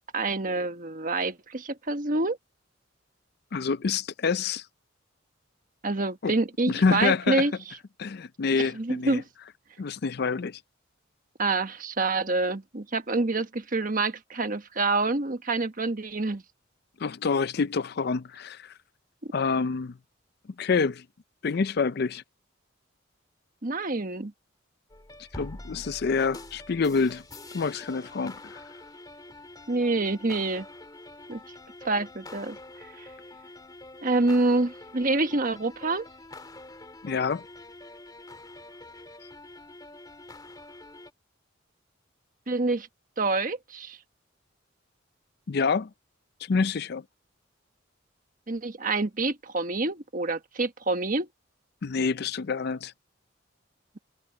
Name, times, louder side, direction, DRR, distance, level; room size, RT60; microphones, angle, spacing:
voice 1, 0.1-2.4 5.8-7.5 8.6-9.2 11.4-16.4 19.2-19.3 23.6-24.3 29.7-30.7 31.3-31.4 31.8-32.6 33.0-33.1 34.0-36.0 42.5-42.9 43.2-44.0 48.5-51.3, right 3 dB, 45° right, 1.3 m, -27 dB
voice 2, 3.5-4.6 6.2-6.3 6.7-7.4 8.0-9.2 9.8-10.6 17.0-18.7 19.3-20.0 20.6-21.0 21.4-22.2 25.3-27.2 27.5-28.6 37.0-37.4 45.5-45.9 46.4-47.0 51.8-52.9, left 5 dB, 55° left, 0.5 m, -27 dB
sound 1, 24.9-41.1, left 2 dB, 20° left, 2.8 m, -46 dB
head